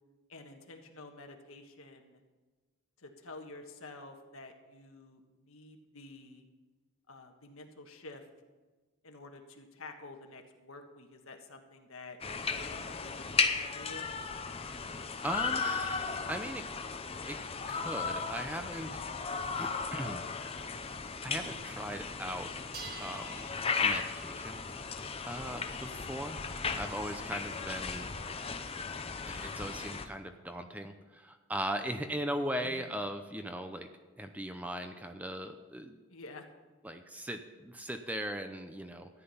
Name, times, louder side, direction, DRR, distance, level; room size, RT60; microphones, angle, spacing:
voice 1, 0.3-2.2 3.0-6.5 7.1-8.2 9.0-12.2 12.5-14.1 25.7-26.1 32.6-32.9 36.1-36.5, left 2 dB, 70° left, 4 dB, 1.5 m, -50 dB
sound 1, 12.2-30.1, left 5 dB, 25° left, 0.7 m, -36 dB
voice 2, 14.6-15.0 15.2-16.6 17.3-17.4 17.7-20.2 21.2-22.5 23.0-23.5 23.8-24.6 24.9-28.1 29.2-33.9 34.2-36.0 36.8-39.1, right 1 dB, 5° right, 7 dB, 0.6 m, -39 dB
sound 2, 15.1-15.6 16.2-17.9 18.5-18.8 19.3-19.4 19.6-19.7 20.0-21.0 21.3-21.9 22.2-30.1, right 4 dB, 45° right, 1.8 m, -54 dB
13.5 x 10.0 x 5.6 m, 1.3 s
head